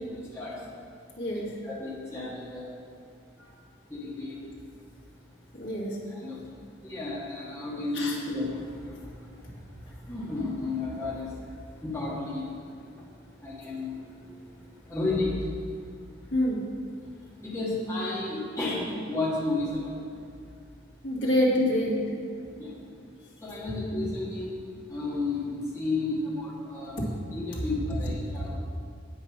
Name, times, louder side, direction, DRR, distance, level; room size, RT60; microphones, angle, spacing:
voice 1, 0.1-0.6 1.6-2.7 3.9-4.4 6.1-6.4 6.8-11.6 11.8-12.5 13.4-14.4 14.9-15.5 17.4-19.9 21.6-21.7 22.3-22.7 23.4-24.6 24.9-28.5, left 2 dB, 15° left, -7 dB, 1.8 m, -32 dB
voice 2, 1.2-1.5 5.5-6.0 7.9-8.1 16.3-16.6 21.0-22.0, equal, 70° left, -5 dB, 2.5 m, -26 dB
8.6 x 8.2 x 6.1 m, 2.3 s
head